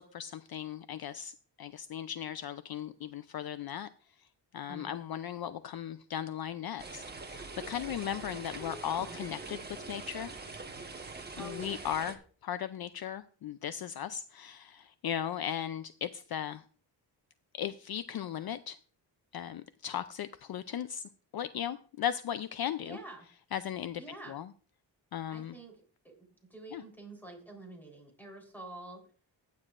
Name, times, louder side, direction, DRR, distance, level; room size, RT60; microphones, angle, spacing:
voice 1, 0.0-3.9 4.2-4.3 4.5-9.6 9.9-10.3 11.4-16.6 17.5-18.8 19.3-23.0 23.5-24.0 24.3-24.5 25.1-25.6 26.7-26.8, left 10 dB, 55° left, 12 dB, 0.5 m, -37 dB
sound 1, 6.8-12.2, right 3 dB, 20° right, 1.2 m, -44 dB
voice 2, 8.6-9.2 11.4-11.8 22.8-23.2 24.0-24.4 25.3-25.8 26.0-29.0, right 1 dB, 5° left, 1 dB, 3.7 m, -47 dB
15.0 x 9.6 x 2.5 m, 0.42 s
wide cardioid pair, 135°, 45 cm